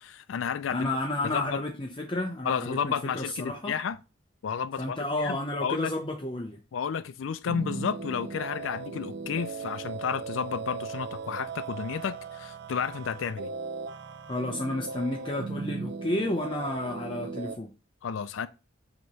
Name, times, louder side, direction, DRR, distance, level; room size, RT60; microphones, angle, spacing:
voice 1, 0.0-0.9 1.3-1.6 2.4-4.0 4.4-5.9 6.7-13.5 18.0-18.5, left 7 dB, 90° left, 0.4 m, -32 dB
voice 2, 0.7-3.7 4.8-6.6 14.3-17.7, left 1 dB, 25° left, 0.7 m, -31 dB
sound 1, 7.5-17.6, right 4 dB, 60° right, 0.5 m, -37 dB
7.8 x 3.0 x 5.4 m
head